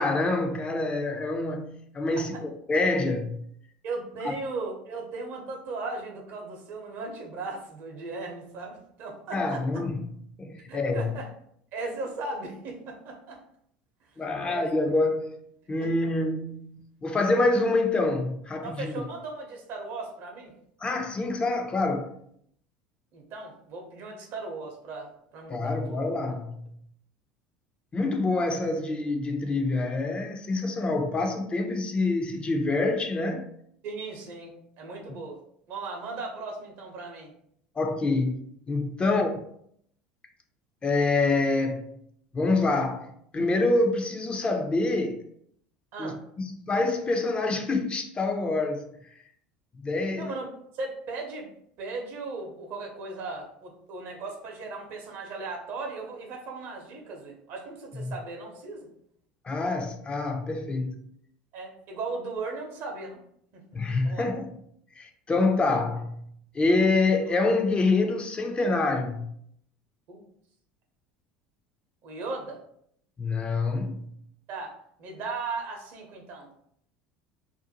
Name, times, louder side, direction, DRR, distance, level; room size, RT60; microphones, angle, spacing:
voice 1, 0.0-3.4 4.2-4.3 9.3-10.1 10.4-11.1 14.2-15.4 15.7-16.8 17.0-18.9 20.8-22.2 25.5-26.6 27.9-33.5 37.8-39.3 40.8-41.8 42.3-45.2 46.0-49.1 49.8-50.3 58.0-58.1 59.4-61.0 63.7-64.5 65.0-66.2 66.5-69.3 73.2-74.1, left 3 dB, 25° left, 0.4 m, -26 dB
voice 2, 3.8-9.8 10.7-11.3 11.7-13.4 14.4-14.7 15.8-15.9 18.6-20.5 23.1-26.0 33.8-35.4 35.7-37.3 39.0-39.2 45.9-46.2 50.2-50.5 50.7-51.5 51.8-58.9 61.5-63.2 63.5-63.6 64.0-64.3 70.1-70.2 72.0-72.6 74.5-76.5, right 3 dB, 60° right, 0.7 m, -37 dB
2.5 x 2.2 x 2.7 m
hypercardioid pair, 75°, 4 cm